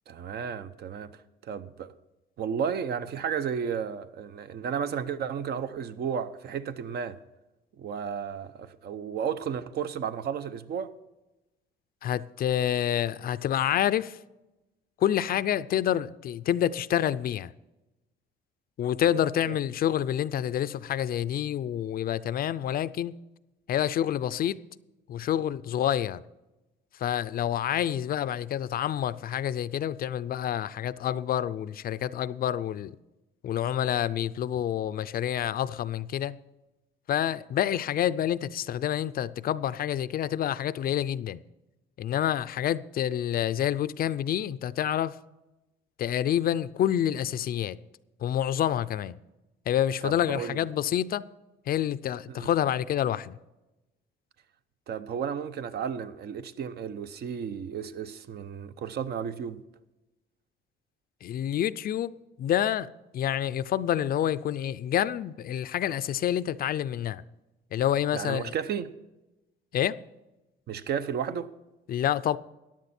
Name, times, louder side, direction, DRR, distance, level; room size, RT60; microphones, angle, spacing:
voice 1, 0.1-1.1 1.4-1.9 2.4-7.2 7.8-10.9 19.0-19.5 50.0-50.7 52.3-52.5 54.9-59.6 68.1-68.9 70.7-71.5, right 7 dB, 55° right, 0.7 m, -33 dB
voice 2, 12.0-14.2 15.0-17.5 18.8-23.1 23.7-24.6 25.1-26.2 27.0-32.9 33.4-36.4 37.1-41.4 42.0-45.1 46.0-47.8 48.2-49.2 49.7-51.2 51.7-53.4 61.2-62.1 62.4-67.2 67.7-68.5 69.7-70.0 71.9-72.4, left 10 dB, 50° left, 0.4 m, -28 dB
14.5 x 10.5 x 4.3 m
cardioid pair, 120°, 19 cm